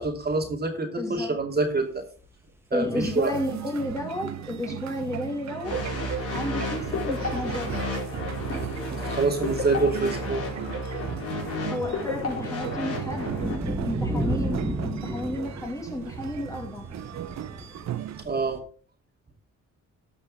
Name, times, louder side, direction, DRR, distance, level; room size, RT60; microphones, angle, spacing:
voice 1, 0.0-2.0 2.7-3.4 8.9-10.4 14.1-14.3 18.2-18.6, right 3 dB, 30° right, 2.6 m, -26 dB
voice 2, 1.0-1.4 2.7-5.8 6.3-7.7 11.7-13.3 13.8-16.8, left 1 dB, 10° left, 2.6 m, -32 dB
sound 1, 1.6-1.7 1.9-2.4 2.8-4.8 5.4-5.5 5.7-5.8 6.1-6.3 6.8-7.6 7.9-18.6, equal, 10° right, 2.3 m, -35 dB
sound 2, 2.9-18.2, right 11 dB, 65° right, 0.9 m, -37 dB
sound 3, 5.6-13.6, left 2 dB, 50° left, 4.8 m, -32 dB
14.0 x 5.5 x 5.3 m
cardioid pair, 90°, 30 cm